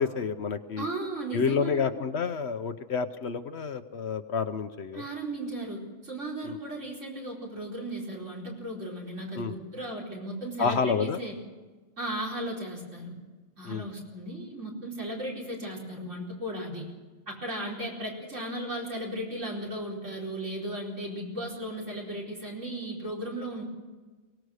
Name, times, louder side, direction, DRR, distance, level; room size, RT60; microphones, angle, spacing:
voice 1, 0.0-0.8 1.3-5.0 6.4-6.6 9.4-9.6 10.6-11.2 13.6-13.9, left 5 dB, 60° left, 10 dB, 1.1 m, -29 dB
voice 2, 0.8-1.8 4.9-11.3 12.0-13.2 13.6-16.9 17.3-23.6, right 1 dB, 65° right, -1 dB, 4.9 m, -36 dB
23.5 x 18.0 x 6.5 m, 1.3 s
omnidirectional pair, 1.3 m